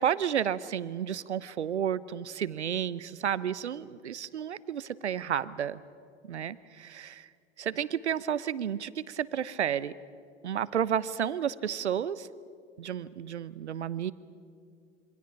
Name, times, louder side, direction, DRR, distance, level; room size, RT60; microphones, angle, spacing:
voice 1, 0.0-5.8 6.2-7.3 7.6-9.9 10.4-12.3 12.8-14.1, right 9 dB, 80° right, 18 dB, 0.9 m, -31 dB
27.0 x 24.5 x 6.0 m, 2.3 s
figure-of-eight pair, 90°, 34 cm